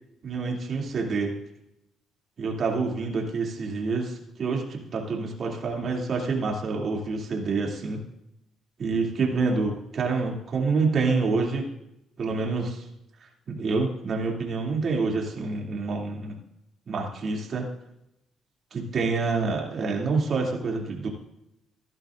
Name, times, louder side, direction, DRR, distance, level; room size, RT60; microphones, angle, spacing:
voice 1, 0.2-1.3 2.4-8.0 8.8-11.7 12.2-12.8 13.5-16.4 16.9-17.7 18.7-21.1, right 4 dB, 50° right, -1 dB, 2.8 m, -27 dB
15.5 x 11.5 x 2.6 m, 0.82 s
cardioid pair, 90°, 0 cm